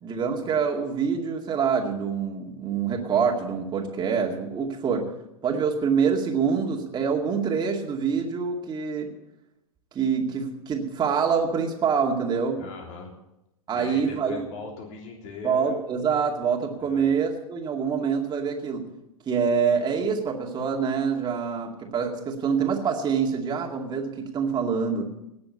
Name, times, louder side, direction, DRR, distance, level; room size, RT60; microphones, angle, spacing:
voice 1, 0.0-5.1 5.4-9.1 9.9-12.6 13.7-14.4 15.4-18.8 19.3-25.0, right 6 dB, 25° right, 1 dB, 2.3 m, -25 dB
voice 2, 12.6-13.1 13.7-15.8 16.8-17.1, left 4 dB, 45° left, 1 dB, 3.4 m, -40 dB
18.5 x 6.9 x 8.5 m, 0.88 s
hypercardioid pair, 100°, 18 cm